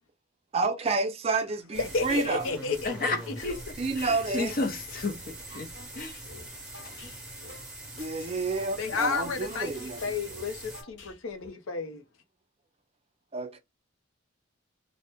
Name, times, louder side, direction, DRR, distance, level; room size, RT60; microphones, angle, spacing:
voice 1, 0.5-2.5 3.1-3.2 3.8-4.5 8.0-10.0 13.3-13.6, right 3 dB, 30° right, 0.4 m, -29 dB
sound 1, 1.7-10.8, right 1 dB, 5° right, 1.0 m, -43 dB
voice 2, 1.8-3.5 8.8-12.0, left 4 dB, 85° left, 0.6 m, -32 dB
voice 3, 2.8-3.6 4.0-5.7 5.9-6.2, left 2 dB, 45° left, 0.7 m, -32 dB
sound 2, 3.5-3.7 4.0-5.1 5.4-8.7 9.0-9.1 9.4-11.5, left 2 dB, 65° left, 1.0 m, -49 dB
2.8 x 2.1 x 3.4 m
head